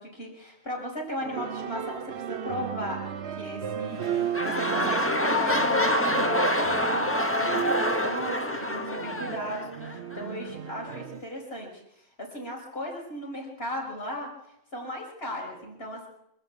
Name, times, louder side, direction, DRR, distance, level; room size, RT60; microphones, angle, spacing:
voice 1, 0.0-3.1 3.4-14.3 14.7-16.1, equal, 65° left, 0 dB, 5.2 m, -37 dB
sound 1, 1.2-11.2, right 9 dB, 70° right, 1.2 m, -35 dB
sound 2, 3.9-10.2 10.9-11.0, left 1 dB, 10° left, 1.5 m, -26 dB
24.5 x 13.0 x 8.2 m, 0.79 s
omnidirectional pair, 1.1 m